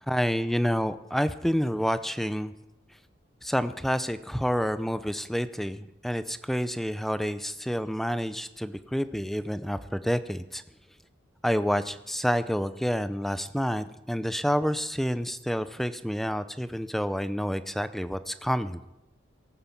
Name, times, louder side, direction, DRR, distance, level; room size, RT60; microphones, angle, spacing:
voice 1, 0.1-2.5 3.4-10.6 11.4-18.8, equal, ahead, 13 dB, 0.6 m, -28 dB
18.0 x 9.3 x 7.2 m, 0.92 s
head